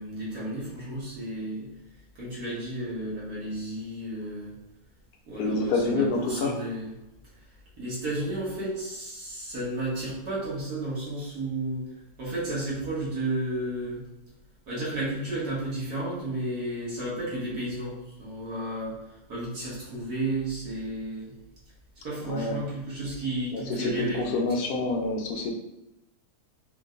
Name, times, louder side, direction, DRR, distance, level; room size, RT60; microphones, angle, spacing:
voice 1, 0.0-1.7 2.2-4.5 5.3-6.9 7.8-14.0 14.7-21.3 22.0-24.4, right 1 dB, 80° right, -7 dB, 2.0 m, -32 dB
voice 2, 5.4-6.5 22.3-22.6 23.5-25.5, left 3 dB, 75° left, 2 dB, 1.1 m, -27 dB
4.5 x 2.2 x 3.7 m, 0.90 s
omnidirectional pair, 1.7 m